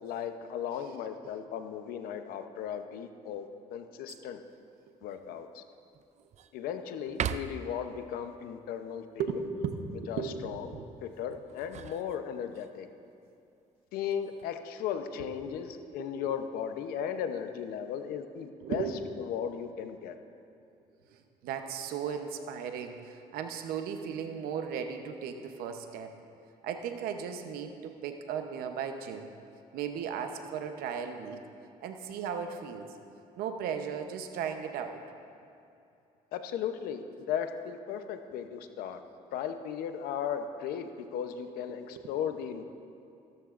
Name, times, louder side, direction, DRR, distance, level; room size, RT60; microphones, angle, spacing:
voice 1, 0.0-4.4 5.0-5.6 6.5-9.0 10.1-10.7 11.0-12.9 13.9-18.8 19.2-20.1 36.3-37.0 37.3-39.0 39.3-42.6, left 8 dB, 85° left, 8 dB, 0.8 m, -36 dB
sound 1, 4.1-4.5 5.1-5.2 5.7-6.6 7.1-7.8 11.3-12.7 14.1-14.6, right 9 dB, 50° right, 0.4 m, -39 dB
voice 2, 9.2-10.9 15.2-16.4 18.6-19.0 21.1-26.1 26.6-29.3 29.7-31.4 31.8-32.9 33.4-35.0 41.7-42.1, right 7 dB, 85° right, 6 dB, 0.9 m, -36 dB
16.5 x 13.0 x 2.5 m, 2.7 s
cardioid pair, 85°, 15 cm